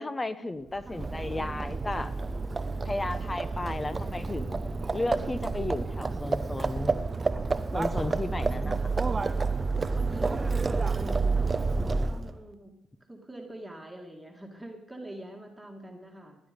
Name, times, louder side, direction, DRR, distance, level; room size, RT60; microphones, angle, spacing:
voice 1, 0.0-2.1 2.8-4.6 4.9-7.0 7.7-8.8, left 2 dB, 20° left, 13 dB, 1.0 m, -34 dB
Livestock farm animals working animals, 0.8-12.4, right 3 dB, 25° right, 0.6 m, -29 dB
voice 2, 8.5-9.3 9.9-12.8 13.1-16.4, right 1 dB, 10° right, 1 dB, 1.9 m, -44 dB
17.0 x 10.5 x 5.2 m, 0.92 s
cardioid pair, 90°, 0 cm